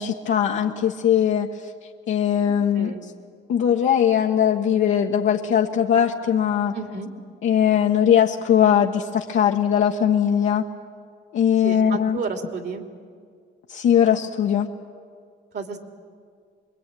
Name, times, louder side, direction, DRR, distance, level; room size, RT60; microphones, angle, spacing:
voice 1, 0.0-1.5 2.1-2.9 3.5-6.7 7.4-10.7 11.3-12.2 13.7-14.7, left 9 dB, 70° left, -1 dB, 1.4 m, -20 dB
voice 2, 2.8-3.1 6.7-7.1 11.6-12.8 15.5-15.8, right 4 dB, 60° right, 4 dB, 3.2 m, -31 dB
25.5 x 22.0 x 9.3 m, 2.1 s
cardioid pair, 90°, 20 cm